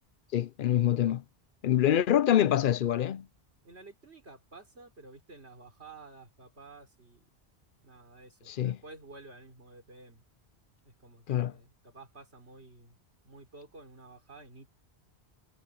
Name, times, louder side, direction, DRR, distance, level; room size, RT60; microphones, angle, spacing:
voice 1, 0.3-1.2 1.6-3.3 8.5-8.8 11.3-11.5, left 11 dB, 60° left, 0.7 m, -25 dB
voice 2, 3.6-7.3 7.8-10.2 10.9-13.0 13.2-14.7, right 3 dB, 85° right, 4.1 m, -52 dB
omnidirectional pair, 1.1 m